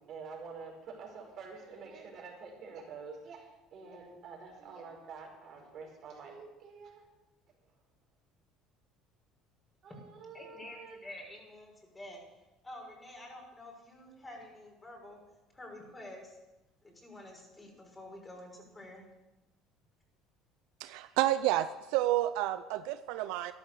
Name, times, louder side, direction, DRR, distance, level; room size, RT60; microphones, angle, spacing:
voice 1, 0.0-7.0 9.8-11.0, right 4 dB, 55° right, 1 dB, 5.2 m, -47 dB
voice 2, 10.3-12.2 12.6-15.2 15.5-16.4 16.8-19.1, left 1 dB, 20° left, 0 dB, 6.0 m, -49 dB
voice 3, 20.8-23.5, right 14 dB, 75° right, 12 dB, 0.5 m, -30 dB
13.5 x 11.5 x 6.7 m, 1.1 s
hypercardioid pair, 70°, 0 cm